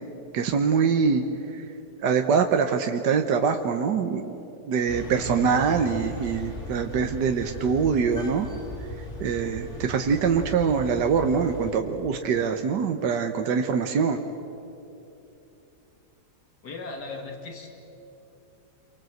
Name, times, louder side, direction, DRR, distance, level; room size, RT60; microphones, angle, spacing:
voice 1, 0.3-1.2 1.5-1.7 2.0-4.4 4.7-8.5 9.2-14.2, right 6 dB, 85° right, 5 dB, 1.7 m, -24 dB
sound 1, 4.9-11.7, equal, 45° left, 4.0 m, -37 dB
voice 2, 16.6-17.7, left 3 dB, 75° left, 3 dB, 2.7 m, -37 dB
28.0 x 24.0 x 7.9 m, 2.9 s
omnidirectional pair, 1.8 m